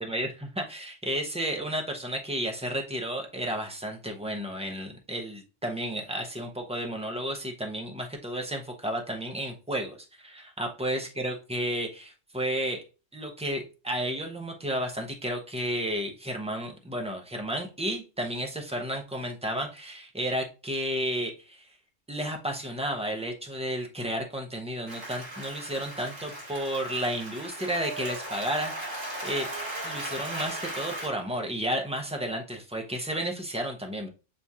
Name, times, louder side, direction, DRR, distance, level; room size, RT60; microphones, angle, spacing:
voice 1, 0.0-12.8 13.1-21.7 22.1-29.5 29.8-34.1, right 1 dB, 10° right, 2 dB, 0.3 m, -32 dB
Applause, 24.9-31.1, right 1 dB, 90° right, 2.4 m, -37 dB
6.6 x 2.4 x 2.7 m, 0.32 s
omnidirectional pair, 1.3 m